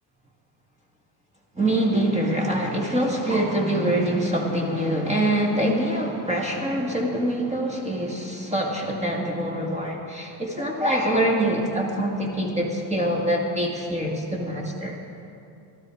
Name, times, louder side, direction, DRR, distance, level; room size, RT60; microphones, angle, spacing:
voice 1, 1.6-15.0, right 1 dB, 15° right, -1 dB, 1.9 m, -24 dB
17.0 x 13.0 x 4.8 m, 2.6 s
cardioid pair, 130°, 49 cm